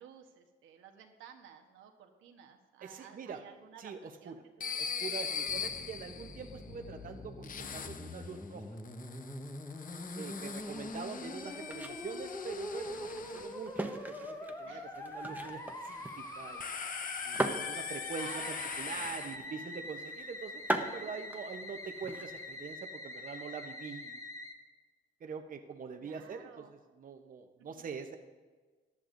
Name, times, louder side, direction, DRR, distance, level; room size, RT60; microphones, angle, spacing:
voice 1, 0.0-3.9 4.2-5.3 6.0-6.2 10.3-11.1 13.1-13.4 14.6-14.9 17.7-19.9 21.0-21.3 26.0-26.7 27.6-27.8, right 8 dB, 85° right, 4 dB, 1.2 m, -54 dB
voice 2, 2.8-3.4 3.8-4.3 4.8-8.6 10.2-16.7 17.2-24.2 25.2-28.2, right 6 dB, 45° right, 5 dB, 0.8 m, -44 dB
sound 1, 4.6-6.6 7.4-8.4 8.8-13.6 15.8-19.4, left 6 dB, 45° left, 0.7 m, -41 dB
Musical instrument, 5.5-24.5, left 1 dB, 15° left, 1.2 m, -44 dB
sound 2, 11.3-22.7, right 1 dB, 10° right, 0.9 m, -41 dB
14.5 x 11.0 x 2.6 m, 1.4 s
cardioid pair, 90°, 20 cm